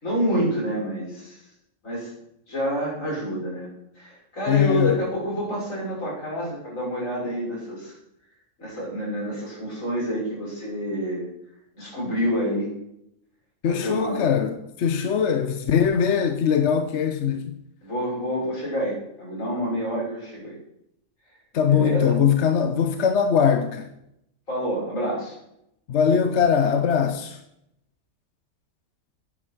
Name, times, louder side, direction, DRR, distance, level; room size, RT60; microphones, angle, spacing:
voice 1, 0.0-1.4 1.8-2.1 2.5-3.7 4.0-7.9 8.6-11.3 11.8-12.7 13.6-14.2 17.8-20.6 21.7-21.9 24.5-25.3, equal, 80° left, 6.6 m, -28 dB
voice 2, 4.5-5.0 13.6-17.5 21.5-23.9 25.9-27.4, left 7 dB, 65° left, 1.0 m, -21 dB
10.0 x 9.6 x 6.1 m
omnidirectional pair, 1.3 m